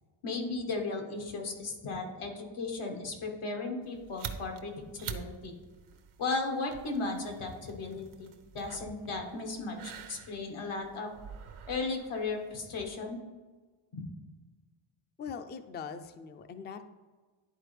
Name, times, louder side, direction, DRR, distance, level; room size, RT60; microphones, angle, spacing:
voice 1, 0.2-5.5 6.2-8.3 8.5-11.1 11.7-13.2 13.9-14.1, left 3 dB, 85° left, 2 dB, 1.5 m, -36 dB
sound 1, 3.8-13.0, right 7 dB, 80° right, 0.8 m, -47 dB
voice 2, 15.2-16.8, left 6 dB, 25° left, 9 dB, 0.3 m, -41 dB
11.0 x 4.2 x 3.3 m, 1.4 s
cardioid pair, 105°, 48 cm